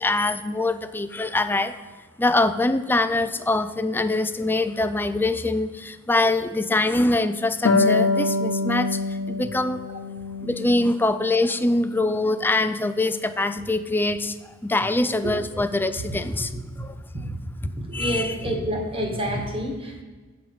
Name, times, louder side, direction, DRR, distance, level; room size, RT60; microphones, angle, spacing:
voice 1, 0.0-1.8 2.2-9.8 10.4-14.4 14.6-16.5 16.8-16.9 17.9-18.4, left 2 dB, 10° left, 11 dB, 0.4 m, -24 dB
Harp, 7.6-11.0 11.4-12.5, left 3 dB, 75° left, 0.9 m, -25 dB
voice 2, 17.9-20.0, equal, 30° right, 1 dB, 1.7 m, -28 dB
8.5 x 5.0 x 6.2 m, 1.3 s
head